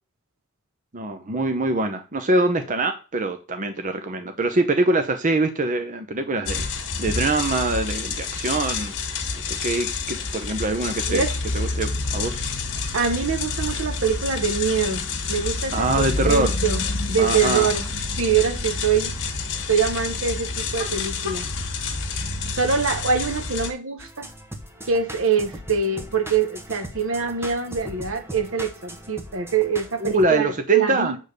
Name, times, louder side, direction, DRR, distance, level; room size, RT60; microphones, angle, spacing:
voice 1, 0.9-6.7 7.0-8.9 9.6-11.2 11.5-12.5 15.7-16.6 17.2-17.7 30.0-31.1, right 2 dB, 35° right, 0.8 m, -24 dB
sound 1, 6.5-23.7, left 4 dB, 60° left, 1.6 m, -28 dB
voice 2, 12.9-15.0 15.3-17.9 18.2-19.1 19.7-21.5 22.6-24.3 24.9-31.2, right 6 dB, 65° right, 1.0 m, -24 dB
sound 2, 24.0-30.3, right 1 dB, 10° right, 1.0 m, -39 dB
8.2 x 3.7 x 6.6 m
head